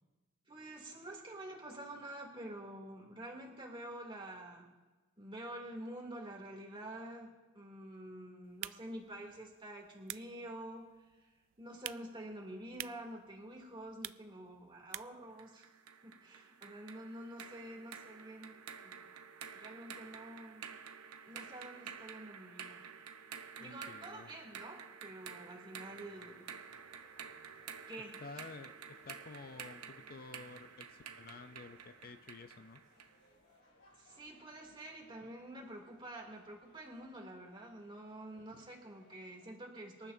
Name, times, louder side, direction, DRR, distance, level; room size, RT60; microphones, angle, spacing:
voice 1, 0.5-4.7 5.2-10.9 11.2-11.3 11.6-15.7 16.0-18.6 18.8-19.0 19.5-20.8 21.2-22.8 23.6-26.6 27.9-28.2 34.0-40.1, right 1 dB, 25° right, -1 dB, 2.8 m, -48 dB
sound 1, 8.4-15.3, right 15 dB, 60° right, 0.3 m, -50 dB
sound 2, 15.4-33.2, right 7 dB, 85° right, 0.9 m, -51 dB
voice 2, 23.6-24.3 28.2-28.7 29.0-32.8, left 3 dB, 45° left, 9 dB, 0.5 m, -51 dB
sound 3, 25.7-39.6, left 1 dB, 60° left, 5.3 m, -67 dB
25.5 x 12.0 x 2.7 m, 1.2 s
head